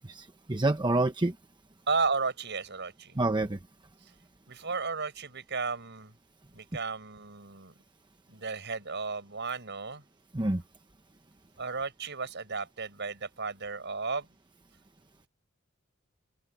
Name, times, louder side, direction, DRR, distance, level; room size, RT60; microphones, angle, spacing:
voice 1, 0.0-1.3 3.2-3.6 10.3-10.6, right 2 dB, 20° right, 0.9 m, -27 dB
voice 2, 1.9-3.2 4.0-4.1 4.5-6.1 6.5-7.7 8.3-10.0 11.6-14.3, right 4 dB, 60° right, 6.9 m, -34 dB
open air
head